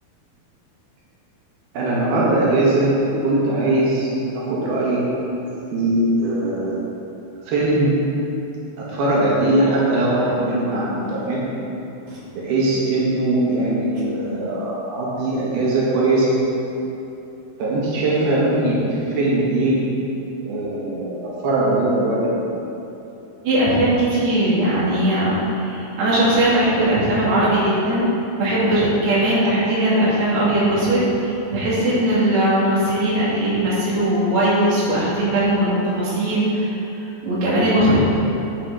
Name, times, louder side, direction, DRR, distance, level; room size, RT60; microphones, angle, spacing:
voice 1, 1.7-5.1 5.7-6.8 7.5-7.9 8.8-11.4 12.4-16.6 17.6-18.9 19.2-19.7 20.4-22.4, right 2 dB, 85° right, -6 dB, 3.7 m, -20 dB
voice 2, 23.4-28.1 28.4-36.7 37.2-38.0, right 1 dB, 50° right, -8 dB, 3.4 m, -19 dB
9.2 x 8.6 x 5.1 m, 3.0 s
omnidirectional pair, 4.3 m